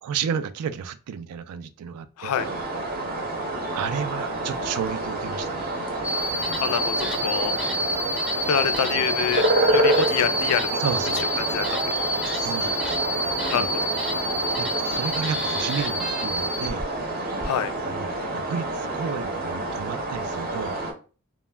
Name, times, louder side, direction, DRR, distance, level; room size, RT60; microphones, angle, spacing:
voice 1, 0.0-2.3 3.7-5.7 10.8-11.3 12.4-13.1 13.5-13.7 14.6-16.9 17.8-20.8, right 7 dB, 90° right, 0.3 m, -32 dB
voice 2, 2.2-2.5 6.6-7.5 8.5-10.8 11.5-11.9 13.5-13.7 17.4-17.7, left 8 dB, 80° left, 0.3 m, -26 dB
sound 1, 2.4-20.9, right 1 dB, 40° right, 0.6 m, -28 dB
sound 2, 6.0-16.8 17.4-17.5, equal, 5° right, 0.4 m, -28 dB
2.1 x 2.1 x 3.2 m
head